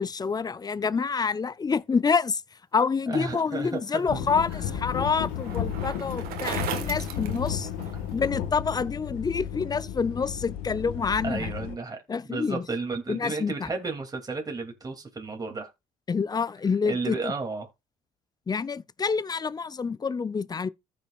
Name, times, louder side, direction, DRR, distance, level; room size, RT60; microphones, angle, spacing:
voice 1, 0.0-2.4 2.7-7.7 8.1-11.5 12.1-12.6 13.1-13.7 16.1-17.3 18.5-20.7, left 5 dB, 25° left, 0.5 m, -27 dB
voice 2, 3.1-4.2 11.2-15.7 16.9-17.7, right 3 dB, 25° right, 2.6 m, -33 dB
Bicycle, 3.8-8.2, right 10 dB, 75° right, 1.5 m, -38 dB
sound 1, 4.1-11.7, left 9 dB, 85° left, 1.5 m, -33 dB
14.5 x 6.2 x 2.4 m
supercardioid pair, 70°, 16 cm